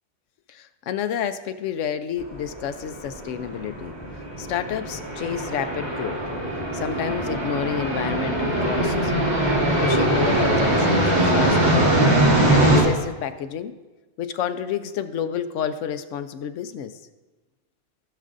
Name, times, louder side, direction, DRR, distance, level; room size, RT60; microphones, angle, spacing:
voice 1, 0.5-3.9 4.4-6.2 6.7-9.1 9.8-12.1 12.5-13.7 14.2-16.9, left 8 dB, 85° left, 10 dB, 1.0 m, -29 dB
sound 1, 2.2-12.8, right 1 dB, 60° right, 2.2 m, -22 dB
16.5 x 6.6 x 2.5 m, 1.2 s
omnidirectional pair, 1.2 m